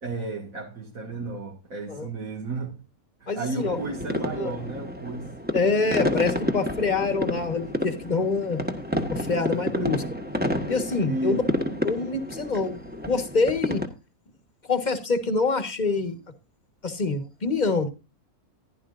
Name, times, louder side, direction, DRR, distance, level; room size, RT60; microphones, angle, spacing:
voice 1, 0.0-2.8 3.2-5.4 5.8-6.3 9.5-9.9 11.0-11.5, right 3 dB, 70° right, 2.6 m, -33 dB
voice 2, 3.3-3.8 4.4-4.5 5.5-8.6 9.1-10.0 10.7-11.4 11.8-12.8 13.1-13.8 14.7-16.2 16.8-17.9, left 4 dB, 30° left, 1.6 m, -25 dB
sound 1, 3.6-13.9, left 1 dB, 5° right, 1.5 m, -30 dB
15.5 x 11.5 x 2.6 m
omnidirectional pair, 1.5 m